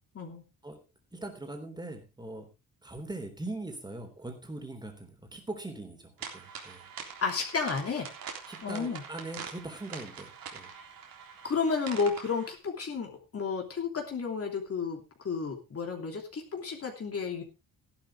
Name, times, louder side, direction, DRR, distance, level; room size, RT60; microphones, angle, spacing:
voice 1, 1.1-2.5 2.8-6.9 8.5-10.7, right 2 dB, 10° right, 5 dB, 3.5 m, -41 dB
sound 1, 6.2-12.6, right 6 dB, 75° right, 3.6 m, -44 dB
voice 2, 7.2-8.1 8.6-9.0 11.4-17.4, left 5 dB, 40° left, 2 dB, 3.1 m, -32 dB
15.0 x 11.5 x 3.6 m, 0.28 s
cardioid pair, 140°, 35 cm